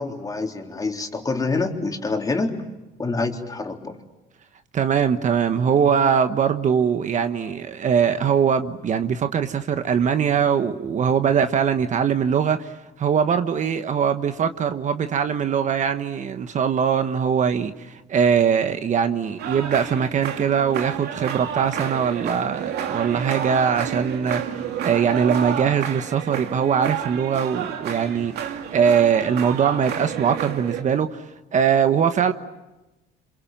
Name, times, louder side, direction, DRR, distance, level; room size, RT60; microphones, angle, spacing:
voice 1, 0.0-2.6 3.0-4.0, left 3 dB, 20° left, 3.8 m, -26 dB
voice 2, 4.7-12.7 13.0-31.2 31.5-32.3, right 7 dB, 45° right, 1.3 m, -21 dB
sound 1, 19.4-30.8, right 8 dB, 75° right, 2.7 m, -30 dB
28.0 x 27.0 x 7.5 m
cardioid pair, 110°, 17 cm